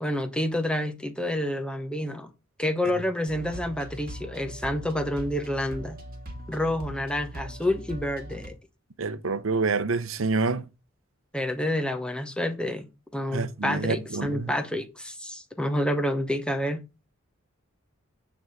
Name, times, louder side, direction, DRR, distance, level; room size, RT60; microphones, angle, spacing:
voice 1, 0.0-2.3 2.6-6.0 6.5-8.5 11.3-16.8, left 1 dB, 5° left, 0.9 m, -28 dB
sound 1, 3.3-8.5, equal, 45° right, 2.0 m, -40 dB
voice 2, 9.0-10.6 13.3-14.5, right 4 dB, 70° right, 0.7 m, -27 dB
9.0 x 3.5 x 6.3 m
head